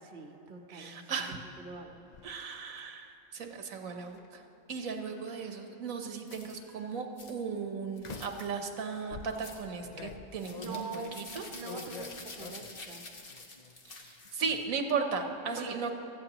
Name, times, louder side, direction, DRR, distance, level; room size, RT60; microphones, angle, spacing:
voice 1, 0.0-2.1 10.5-11.2 11.5-13.0 15.5-15.9, right 4 dB, 45° right, 4 dB, 1.0 m, -43 dB
voice 2, 0.7-1.4 2.2-4.4 4.7-10.9 11.2-11.4 13.8-15.9, right 5 dB, 80° right, 5 dB, 1.4 m, -36 dB
sound 1, 1.7-2.3 4.0-4.3 5.0-5.9 6.6-6.9 8.0-8.5 9.1-12.9 13.2-13.8 14.0-14.6, left 6 dB, 60° left, 0.4 m, -47 dB
sound 2, 6.3-6.6 7.2-7.3 8.0-8.5 9.3-9.6 10.3-14.6, left 3 dB, 45° left, 1.3 m, -48 dB
18.5 x 14.5 x 3.0 m, 3.0 s
omnidirectional pair, 1.4 m